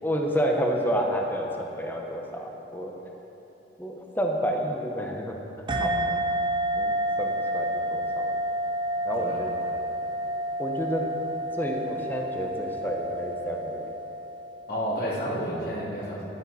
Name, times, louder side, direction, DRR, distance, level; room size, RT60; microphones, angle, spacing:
voice 1, 0.0-2.9 3.8-5.3 5.8-6.1 6.8-8.3 9.0-9.5 10.6-11.1 11.6-13.9, equal, 10° left, 1 dB, 0.9 m, -29 dB
voice 2, 5.7-6.1 9.1-9.5 14.7-16.3, equal, 55° left, -6 dB, 2.7 m, -31 dB
sound 1, 5.7-14.7, right 1 dB, 25° right, 0.7 m, -30 dB
13.5 x 11.0 x 4.2 m, 3.0 s
head